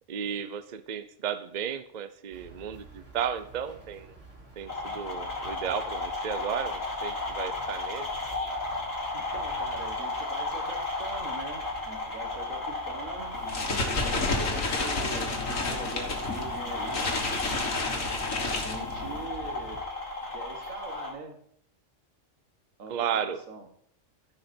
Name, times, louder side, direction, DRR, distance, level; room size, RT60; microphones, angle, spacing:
voice 1, 0.1-4.2 4.6-8.1 22.9-23.4, right 8 dB, 45° right, 12 dB, 0.6 m, -34 dB
sound 1, 2.3-19.8, right 2 dB, 65° right, 3.1 m, -49 dB
sound 2, 4.7-21.1, left 2 dB, 50° left, 2.7 m, -34 dB
voice 2, 9.1-13.3 13.9-17.2 18.4-19.8 20.3-21.4 22.8-23.7, right 3 dB, 85° right, 4 dB, 1.9 m, -42 dB
sound 3, 13.3-19.3, left 3 dB, 80° left, 2.0 m, -31 dB
14.0 x 5.8 x 4.3 m, 0.66 s
omnidirectional pair, 1.4 m